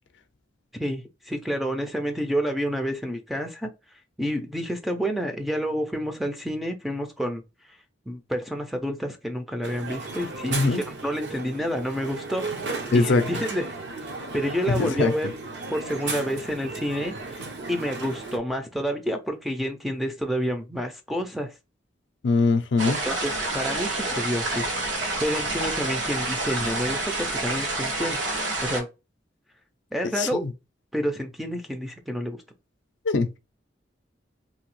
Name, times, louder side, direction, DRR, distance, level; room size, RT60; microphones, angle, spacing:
voice 1, 0.7-3.7 4.2-7.4 8.1-10.8 11.0-13.6 14.0-14.1 14.3-15.3 15.7-17.4 17.7-21.5 22.9-24.7 25.2-28.2 28.6-28.9 29.9-30.4 30.9-32.4, equal, ahead, 0.4 m, -29 dB
Crowd, 9.6-18.4, right 3 dB, 65° right, 0.7 m, -35 dB
voice 2, 10.5-10.8 12.9-13.3 14.7-15.1 22.2-23.0 30.2-30.5 33.0-33.4, left 3 dB, 65° left, 0.4 m, -22 dB
sound 1, 22.8-28.8, right 2 dB, 85° right, 1.1 m, -28 dB
2.9 x 2.6 x 3.0 m
head